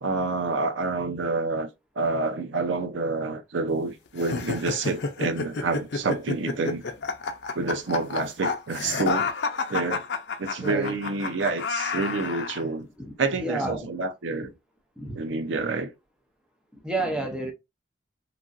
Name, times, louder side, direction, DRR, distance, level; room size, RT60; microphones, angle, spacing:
voice 1, 0.0-1.7 2.0-6.8 7.5-9.3 9.7-10.0 10.4-12.9 13.2-14.5 15.2-15.9, right 3 dB, 85° right, 0.5 m, -28 dB
sound 1, 4.2-12.6, left 4 dB, 65° left, 0.4 m, -30 dB
voice 2, 10.6-11.0 13.0-13.9 15.0-15.2 16.7-17.5, right 2 dB, 5° right, 0.6 m, -31 dB
2.9 x 2.5 x 2.5 m
head